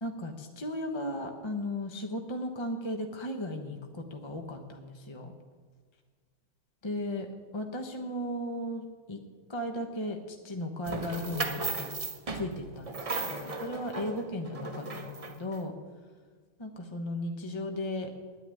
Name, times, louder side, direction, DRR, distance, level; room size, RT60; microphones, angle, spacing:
voice 1, 0.0-5.3 6.8-7.3 7.5-9.2 9.5-11.9 12.3-15.7 16.6-18.1, left 1 dB, 30° left, 4 dB, 0.5 m, -36 dB
sound 1, 10.8-15.5, right 3 dB, 30° right, 0.6 m, -36 dB
10.0 x 9.7 x 9.8 m, 1.5 s
omnidirectional pair, 2.2 m